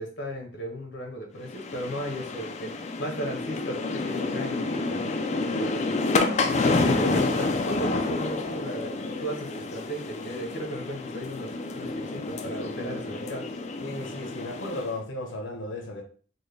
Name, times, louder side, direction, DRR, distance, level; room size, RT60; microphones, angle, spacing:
voice 1, 0.0-13.5, right 1 dB, 60° left, 2 dB, 1.0 m, -36 dB
sound 1, 1.5-15.0, left 3 dB, 35° left, 0.4 m, -29 dB
voice 2, 13.8-16.0, left 2 dB, 80° left, 3 dB, 0.7 m, -35 dB
4.2 x 2.2 x 3.2 m, 0.42 s
head